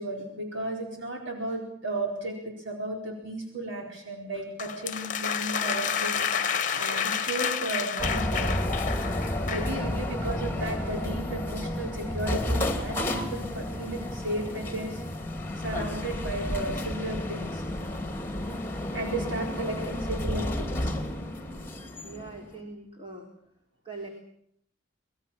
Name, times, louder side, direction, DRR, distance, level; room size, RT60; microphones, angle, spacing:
voice 1, 0.0-8.6 9.4-15.0 15.6-17.6 18.9-20.9, right 1 dB, 70° right, 1 dB, 4.5 m, -34 dB
sound 1, 4.6-9.8, left 7 dB, 40° left, 1.2 m, -30 dB
sound 2, 8.0-22.6, left 1 dB, 10° left, 2.6 m, -31 dB
voice 2, 19.2-19.5 22.0-23.3 23.8-24.1, right 2 dB, 25° right, 1 dB, 3.4 m, -42 dB
25.5 x 20.5 x 7.3 m, 0.70 s
head